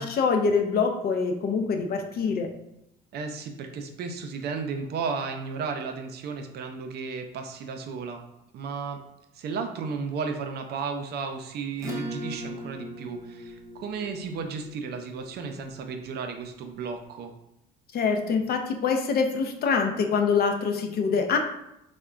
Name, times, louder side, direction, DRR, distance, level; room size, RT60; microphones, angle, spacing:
voice 1, 0.0-2.5 17.9-21.4, left 5 dB, 50° left, 4 dB, 0.5 m, -25 dB
voice 2, 3.1-8.2 8.5-9.0 9.3-17.3, right 5 dB, 55° right, 5 dB, 0.4 m, -34 dB
Acoustic guitar / Strum, 11.8-16.7, equal, 15° right, 0.7 m, -40 dB
3.4 x 2.1 x 2.4 m, 0.84 s
supercardioid pair, 80°, 21 cm